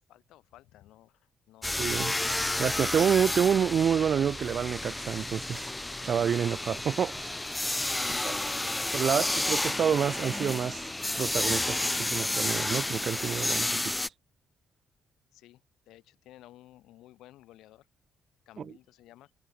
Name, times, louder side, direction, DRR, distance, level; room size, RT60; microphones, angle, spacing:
voice 1, 0.1-1.9 7.8-9.5 15.3-17.9 18.5-19.3, left 15 dB, 90° left, 3.3 m, -55 dB
sound 1, 1.6-14.1, left 1 dB, 10° left, 0.5 m, -31 dB
voice 2, 1.8-2.1 2.6-5.7 6.0-7.3 8.2-8.3 8.9-10.9 11.1-14.0 18.6-18.7, right 8 dB, 55° right, 0.4 m, -28 dB
cardioid pair, 90°, 0 cm